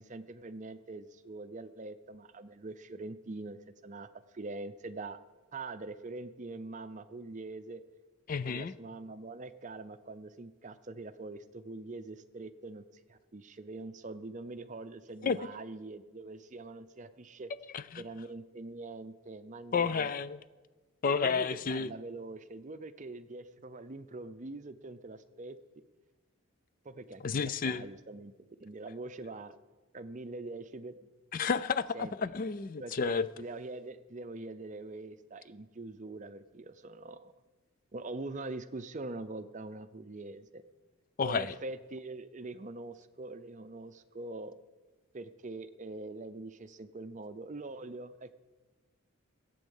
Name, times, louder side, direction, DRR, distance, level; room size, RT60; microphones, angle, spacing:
voice 1, 0.0-4.1 4.3-5.2 5.5-7.8 8.5-17.5 18.0-20.1 21.1-25.6 26.8-27.2 27.7-28.3 28.6-29.6 29.9-31.1 31.9-32.1 32.8-37.3 37.9-40.6 41.2-44.5 45.1-48.3, right 2 dB, 35° right, 0.6 m, -43 dB
voice 2, 8.3-8.7 15.2-15.4 17.7-18.0 19.7-20.4 21.0-21.9 27.2-27.9 31.3-33.3 41.2-41.5, left 5 dB, 40° left, 0.4 m, -31 dB
15.5 x 8.5 x 7.2 m
head